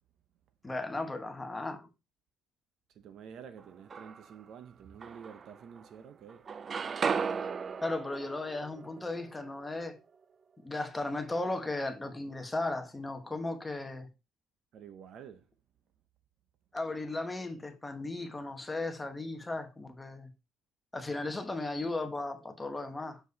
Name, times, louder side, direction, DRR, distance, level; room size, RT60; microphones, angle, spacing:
voice 1, 0.6-1.9 7.4-7.5 7.8-10.0 10.6-14.1 16.7-20.3 20.9-23.2, left 2 dB, 10° left, 1.1 m, -36 dB
voice 2, 3.0-6.5 14.7-15.4, right 7 dB, 55° right, 0.7 m, -49 dB
sound 1, 3.6-4.4 5.0-6.0 6.3-10.2, right 6 dB, 30° right, 0.3 m, -37 dB
6.9 x 4.6 x 4.0 m
cardioid pair, 140°, 0 cm